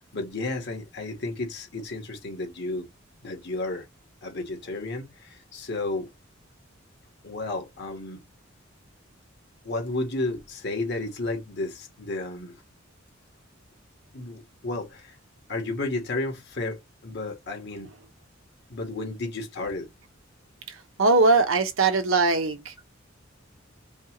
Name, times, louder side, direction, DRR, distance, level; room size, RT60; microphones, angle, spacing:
voice 1, 0.0-2.9 3.2-3.9 4.2-6.1 7.2-8.2 9.6-12.6 14.1-15.2 15.5-17.9 18.7-19.9, left 2 dB, 55° left, 1.5 m, -32 dB
voice 2, 21.0-22.7, right 3 dB, 90° right, 1.0 m, -20 dB
5.3 x 2.4 x 3.0 m
head